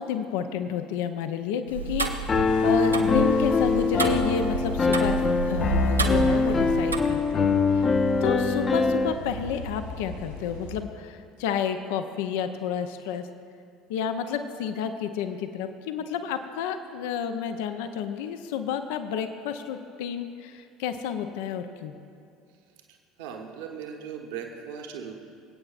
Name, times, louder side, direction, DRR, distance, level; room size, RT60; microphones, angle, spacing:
voice 1, 0.0-7.9 8.2-13.3 13.9-21.9, left 7 dB, 65° left, 9 dB, 0.6 m, -30 dB
Tick-tock, 1.7-7.0, right 4 dB, 85° right, 0.6 m, -31 dB
Piano, 2.3-9.1, left 4 dB, 30° left, 0.7 m, -23 dB
sound 1, 2.4-10.8, left 1 dB, 85° left, 1.5 m, -41 dB
voice 2, 23.2-25.1, right 7 dB, 65° right, 1 dB, 1.1 m, -38 dB
25.5 x 8.6 x 2.5 m, 2.4 s
figure-of-eight pair, 65°, 0 cm